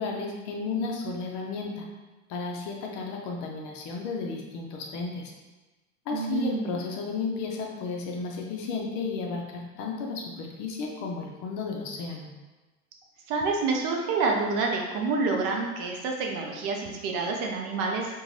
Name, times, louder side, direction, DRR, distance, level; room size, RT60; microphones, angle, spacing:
voice 1, 0.0-1.8 2.3-5.3 6.1-12.3, left 4 dB, 45° left, 0 dB, 0.6 m, -33 dB
voice 2, 6.1-6.7 13.3-18.2, right 4 dB, 45° right, 1 dB, 0.5 m, -28 dB
2.5 x 2.3 x 3.1 m, 1.2 s
hypercardioid pair, 105°, 44 cm